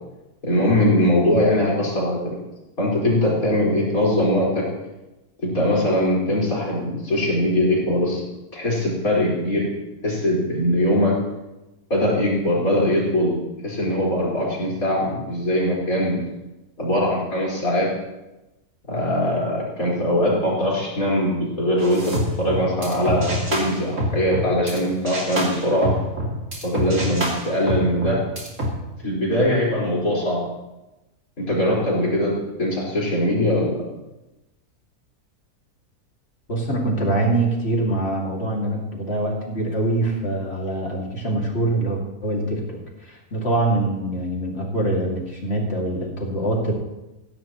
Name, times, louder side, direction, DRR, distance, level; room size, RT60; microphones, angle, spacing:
voice 1, 0.4-2.3 2.8-4.6 5.4-8.2 8.5-9.7 10.0-11.1 11.9-13.3 13.6-16.2 16.8-17.9 18.9-25.9 26.6-28.2 29.0-30.5 31.4-33.7, left 1 dB, 60° left, -5 dB, 5.2 m, -21 dB
sound 1, 21.8-24.8 25.1-28.7, equal, 50° right, 2.9 m, -26 dB
voice 2, 36.5-46.7, right 2 dB, 40° left, -1 dB, 2.6 m, -24 dB
15.5 x 15.5 x 3.0 m, 1.0 s
omnidirectional pair, 1.7 m